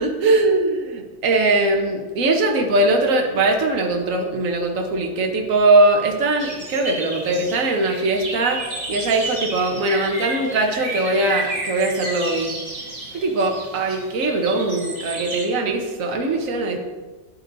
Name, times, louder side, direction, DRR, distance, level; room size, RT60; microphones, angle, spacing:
voice 1, 0.0-8.6 8.9-12.5 13.1-16.8, right 2 dB, 45° right, 2 dB, 1.5 m, -20 dB
sound 1, 6.4-15.4, right 2 dB, 20° right, 1.8 m, -32 dB
11.0 x 8.9 x 4.1 m, 1.3 s
omnidirectional pair, 2.1 m